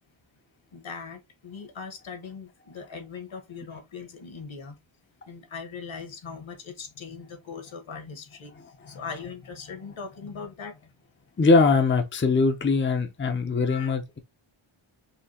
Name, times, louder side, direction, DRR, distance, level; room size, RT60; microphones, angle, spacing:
voice 1, 0.7-4.8 5.3-10.9 13.7-13.9, left 5 dB, 65° left, 1.4 m, -40 dB
voice 2, 11.4-14.2, left 4 dB, 25° left, 0.6 m, -22 dB
5.7 x 2.7 x 2.8 m
wide cardioid pair, 165°, 50 cm